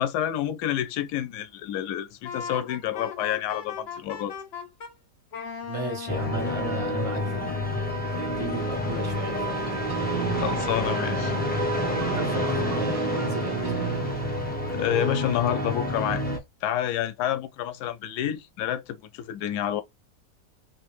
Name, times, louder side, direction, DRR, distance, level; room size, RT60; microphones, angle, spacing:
voice 1, 0.0-4.3 10.3-11.3 14.7-16.2 16.6-19.8, left 11 dB, 75° left, 1.1 m, -28 dB
Wind instrument woodwind instrument, 2.2-4.9 5.3-7.7, left 7 dB, 55° left, 0.7 m, -38 dB
voice 2, 5.6-9.7 12.1-13.8, right 3 dB, 25° right, 0.8 m, -35 dB
sound 1, 6.1-16.4, left 1 dB, 10° left, 0.4 m, -28 dB
sound 2, 9.6-15.0, right 11 dB, 70° right, 0.9 m, -35 dB
3.4 x 2.5 x 3.1 m
omnidirectional pair, 1.8 m